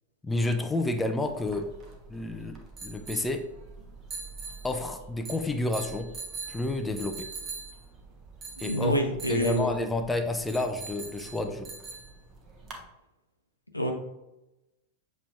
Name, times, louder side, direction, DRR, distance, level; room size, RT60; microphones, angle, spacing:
voice 1, 0.2-1.7 2.1-3.4 4.6-6.1 6.5-7.3 8.6-8.9 9.3-11.7, left 2 dB, 10° left, 6 dB, 0.4 m, -30 dB
sound 1, 1.2-12.8, right 4 dB, 30° right, 1.0 m, -43 dB
voice 2, 8.6-9.7 13.7-13.9, equal, 85° left, 3 dB, 0.7 m, -27 dB
6.7 x 3.1 x 2.5 m, 0.92 s
figure-of-eight pair, 90°, 0 cm